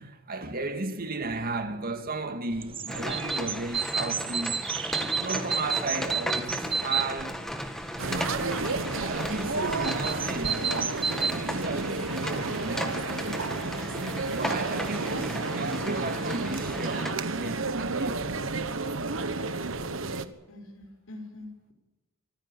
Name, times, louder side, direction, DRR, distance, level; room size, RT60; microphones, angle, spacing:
voice 1, 0.0-4.6 5.0-7.4 8.0-8.5 9.0-10.7 11.2-14.0 14.3-18.8 19.1-19.3, right 2 dB, 45° right, 2.1 m, -35 dB
sound 1, 2.5-11.3, right 6 dB, 25° right, 1.1 m, -32 dB
sound 2, 2.9-17.1, equal, ahead, 2.0 m, -36 dB
sound 3, 8.0-20.3, right 3 dB, 70° right, 1.4 m, -31 dB
voice 2, 20.5-21.7, left 2 dB, 85° left, 5.2 m, -45 dB
25.0 x 15.0 x 9.1 m
head